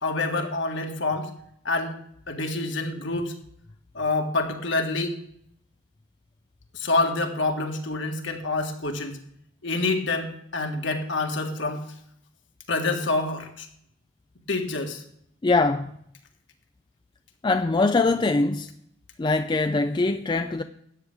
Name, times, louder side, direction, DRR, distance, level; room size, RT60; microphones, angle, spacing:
voice 1, 0.0-1.3 1.6-2.0 2.3-3.3 3.9-5.2 6.7-9.2 9.6-11.8 12.7-13.7 14.5-15.0, left 3 dB, 65° left, 1.7 m, -27 dB
voice 2, 15.4-15.9 17.4-18.7 19.2-20.6, left 3 dB, 20° left, 0.4 m, -22 dB
13.0 x 9.5 x 3.5 m
head